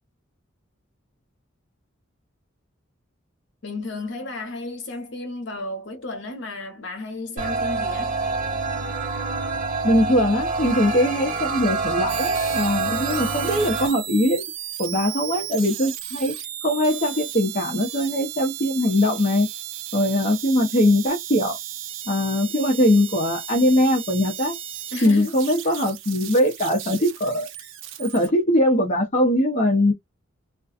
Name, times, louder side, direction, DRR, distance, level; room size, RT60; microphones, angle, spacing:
voice 1, 3.6-8.2 24.9-25.4, left 2 dB, 65° left, 0.9 m, -33 dB
sound 1, 7.4-13.9, right 4 dB, 40° right, 0.6 m, -26 dB
voice 2, 9.8-14.4 14.8-16.3 16.6-19.5 19.9-21.6 22.1-24.6 25.0-27.5 28.0-29.9, left 1 dB, 40° left, 0.7 m, -21 dB
sound 2, 12.1-28.3, right 11 dB, 85° right, 0.5 m, -35 dB
2.5 x 2.2 x 2.4 m
head